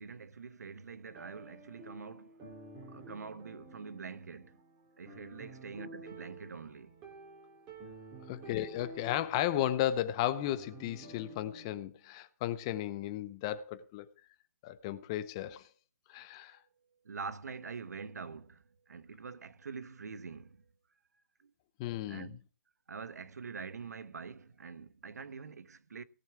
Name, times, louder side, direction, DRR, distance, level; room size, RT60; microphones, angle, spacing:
voice 1, 0.0-2.5 2.9-4.6 5.0-7.0 16.5-16.6 17.0-20.6 21.4-21.5 22.1-22.4 22.9-26.0, right 5 dB, 70° right, 1.0 m, -45 dB
sound 1, 1.1-11.8, right 2 dB, 15° right, 2.7 m, -51 dB
voice 2, 8.3-14.0 14.6-15.7 16.1-16.6 21.8-22.3, left 12 dB, 15° left, 0.6 m, -34 dB
17.5 x 7.3 x 4.6 m
hypercardioid pair, 170°, 9 cm